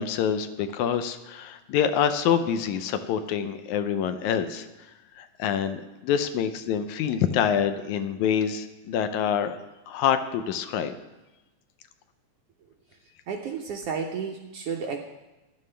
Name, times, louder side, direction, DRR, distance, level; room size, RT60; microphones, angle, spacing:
voice 1, 0.0-4.7 5.2-9.5 9.9-10.9, left 8 dB, 80° left, 10 dB, 1.9 m, -26 dB
voice 2, 13.3-15.0, right 6 dB, 85° right, 2 dB, 1.3 m, -32 dB
14.5 x 10.5 x 3.3 m, 1.1 s
omnidirectional pair, 3.6 m